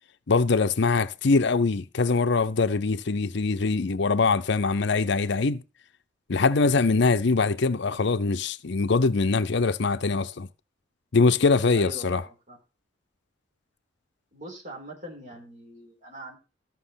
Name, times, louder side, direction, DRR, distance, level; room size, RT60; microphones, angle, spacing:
voice 1, 0.3-5.6 6.3-10.5 11.1-12.2, left 4 dB, 60° left, 0.6 m, -23 dB
voice 2, 11.7-12.6 14.3-16.4, right 1 dB, 40° right, 4.4 m, -42 dB
13.5 x 6.0 x 5.7 m
head